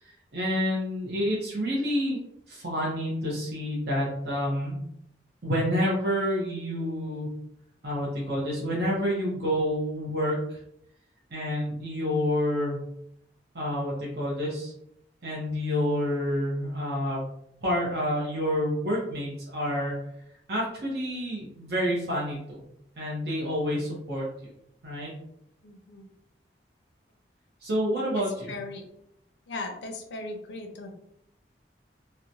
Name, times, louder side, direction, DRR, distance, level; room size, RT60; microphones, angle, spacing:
voice 1, 0.3-2.2 2.5-4.8 5.4-7.3 7.8-10.6 11.3-12.8 13.5-14.7 15.2-17.2 17.6-19.9 20.5-22.6 23.0-24.3 24.8-25.1 27.6-28.5, equal, 65° right, -5 dB, 0.7 m, -28 dB
voice 2, 25.6-26.1 28.1-28.9 29.5-30.9, left 2 dB, 85° left, 3 dB, 0.5 m, -38 dB
2.9 x 2.1 x 2.6 m, 0.76 s
head